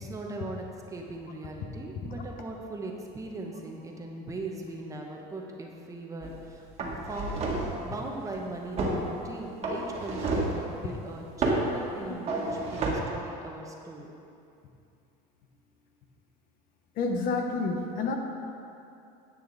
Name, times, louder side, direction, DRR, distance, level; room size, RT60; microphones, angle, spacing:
voice 1, 0.0-7.4 7.8-14.1, right 2 dB, 20° right, 0 dB, 1.0 m, -39 dB
sound 1, 6.2-6.4 6.8-7.8 8.8-9.0 9.6-10.6 11.4-11.7 12.3-12.9, right 2 dB, 35° right, 1.6 m, -29 dB
voice 2, 16.9-18.1, left 3 dB, 50° left, 3 dB, 1.1 m, -29 dB
10.0 x 8.6 x 4.0 m, 2.6 s
cardioid pair, 140°, 18 cm